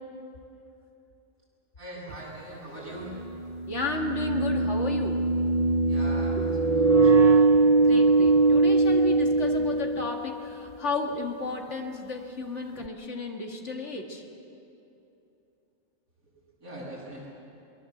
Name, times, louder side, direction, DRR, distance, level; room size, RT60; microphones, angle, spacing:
voice 1, 1.8-3.2 3.4-3.6 5.9-6.4 6.7-7.1 16.6-17.3, right 1 dB, 80° right, -6 dB, 8.4 m, -41 dB
sound 1, 2.1-2.2 3.7-10.6, right 3 dB, 45° right, 0.5 m, -21 dB
voice 2, 3.7-5.3 6.4-6.6 7.8-14.2, left 3 dB, 55° left, 2 dB, 2.2 m, -33 dB
23.5 x 22.5 x 7.8 m, 2.8 s
omnidirectional pair, 1.5 m